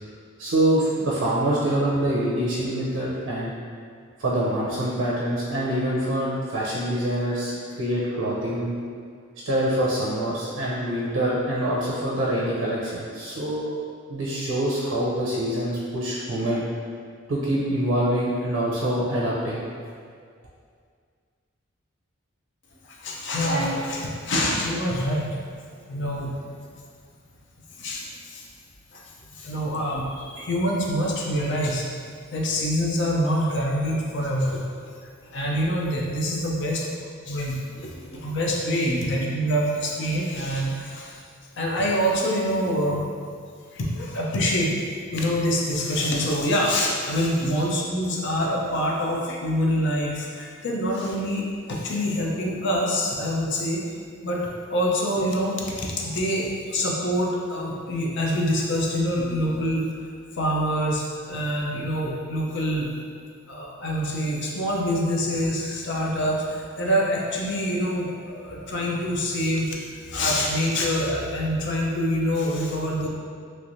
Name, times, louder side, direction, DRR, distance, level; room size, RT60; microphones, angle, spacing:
voice 1, 0.4-3.5 4.2-8.7 9.4-13.7 14.1-16.6 17.3-19.7, right 1 dB, 85° right, -6 dB, 0.5 m, -25 dB
voice 2, 22.8-26.5 27.8-28.4 28.9-31.9 32.3-34.6 35.2-36.9 37.2-41.2 41.6-43.0 43.7-44.7 45.1-53.8 54.2-59.8 60.4-62.9 63.5-73.1, equal, 60° left, -2 dB, 0.5 m, -26 dB
3.1 x 3.1 x 2.6 m, 2.1 s
head